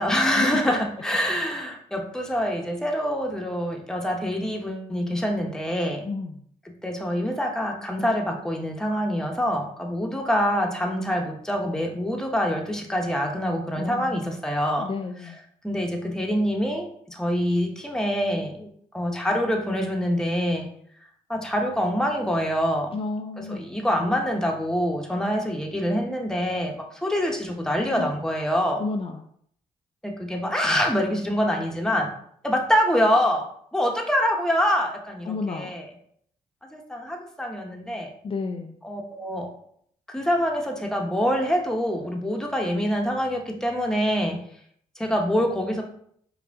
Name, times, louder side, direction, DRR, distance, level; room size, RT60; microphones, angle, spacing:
voice 1, 0.0-6.1 6.8-14.9 15.2-15.3 15.6-18.7 18.9-20.7 21.3-23.0 23.4-28.8 30.0-32.1 32.4-33.5 33.7-35.9 36.7-38.1 38.8-39.5 40.1-44.4 45.0-45.8, equal, 5° left, 1 dB, 1.0 m, -25 dB
voice 2, 6.1-6.4 13.8-14.4 14.8-15.4 22.9-23.6 27.9-28.1 28.8-29.2 35.3-35.7 38.2-38.7, left 3 dB, 35° left, 3 dB, 0.4 m, -31 dB
4.8 x 2.4 x 3.6 m, 0.65 s
supercardioid pair, 60°, 15 cm